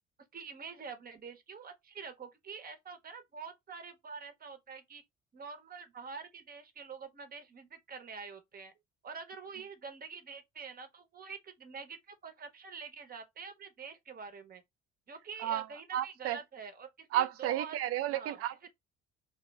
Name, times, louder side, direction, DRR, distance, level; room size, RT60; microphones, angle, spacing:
voice 1, 0.3-5.0 5.3-8.7 9.0-14.6 15.1-17.8 18.1-18.4, right 5 dB, 30° right, 0.7 m, -46 dB
voice 2, 15.9-16.4 17.1-18.7, right 12 dB, 50° right, 0.4 m, -32 dB
2.2 x 2.0 x 3.3 m
hypercardioid pair, 55°, 32 cm